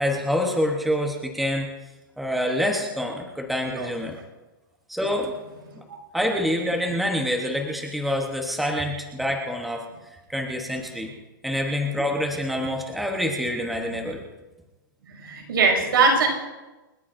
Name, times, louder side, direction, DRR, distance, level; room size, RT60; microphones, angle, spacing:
voice 1, 0.0-1.7 2.2-4.2 4.9-5.3 6.1-9.8 10.3-11.1 11.4-14.2, equal, ahead, 1 dB, 1.0 m, -26 dB
voice 2, 15.1-16.3, right 4 dB, 85° right, 2 dB, 6.0 m, -21 dB
29.0 x 14.5 x 2.6 m, 1.1 s
hypercardioid pair, 175°, 12 cm